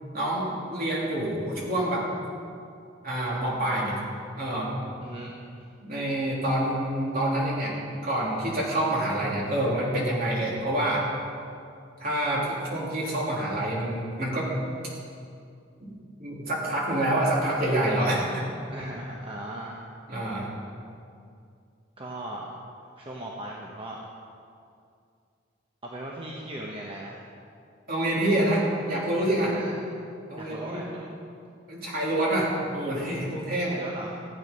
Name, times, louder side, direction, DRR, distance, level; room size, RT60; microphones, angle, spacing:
voice 1, 0.1-2.1 3.0-4.0 4.4-4.7 5.8-11.1 12.0-14.5 15.8-15.9 16.2-18.4 20.1-20.5 27.9-29.5 30.3-30.8 31.7-33.8, right 1 dB, 50° right, -5 dB, 3.4 m, -27 dB
voice 2, 5.0-5.6 18.7-19.8 22.0-22.5 23.0-24.0 25.8-27.2 29.4-29.9 30.4-31.2 33.6-34.2, right 1 dB, 30° right, -2 dB, 1.1 m, -38 dB
15.5 x 8.9 x 5.4 m, 2.4 s
head